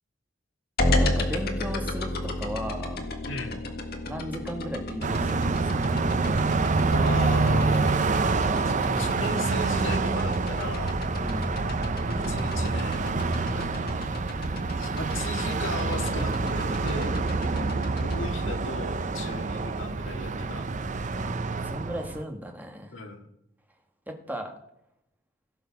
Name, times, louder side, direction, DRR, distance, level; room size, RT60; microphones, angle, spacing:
sound 1, 0.8-18.2, left 1 dB, 50° left, 1.7 m, -32 dB
voice 1, 0.8-3.0 4.0-5.9 11.2-11.6 17.5-17.8 21.2-22.9 24.1-24.5, equal, 10° right, 3 dB, 1.5 m, -36 dB
voice 2, 3.3-3.6 6.9-11.0 12.1-13.1 13.4-13.8 14.8-17.1 18.0-20.7 22.9-23.3, left 2 dB, 70° left, 4 dB, 1.9 m, -36 dB
Car passing by, 5.0-22.2, right 3 dB, 40° right, 0.5 m, -27 dB
16.5 x 7.0 x 5.9 m, 0.81 s
head